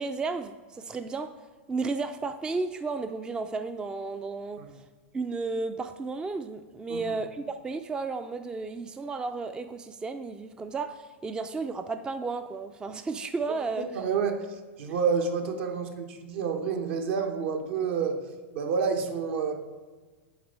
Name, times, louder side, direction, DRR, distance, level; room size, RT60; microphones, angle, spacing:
voice 1, 0.0-4.9 5.1-13.9, right 3 dB, 10° right, 9 dB, 0.3 m, -33 dB
voice 2, 13.9-18.2 18.5-19.5, right 5 dB, 65° right, 5 dB, 1.1 m, -29 dB
8.7 x 3.6 x 5.4 m, 1.4 s
hypercardioid pair, 120°, 7 cm